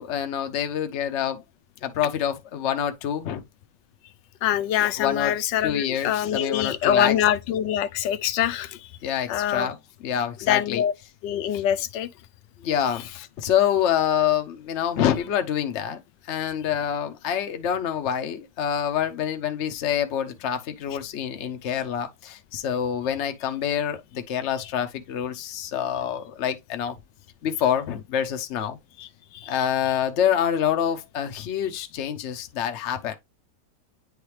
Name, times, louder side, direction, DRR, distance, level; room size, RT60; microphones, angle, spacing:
voice 1, 0.0-1.4 1.8-3.4 5.0-5.3 5.6-7.2 9.0-10.8 12.6-13.1 13.4-27.0 27.4-28.8 29.5-33.2, left 9 dB, 55° left, 0.9 m, -26 dB
voice 2, 4.4-8.9 9.3-9.7 10.4-10.9 11.2-12.1 29.0-29.1 29.3-29.6, left 10 dB, 85° left, 1.2 m, -24 dB
9.3 x 3.3 x 3.2 m
omnidirectional pair, 1.9 m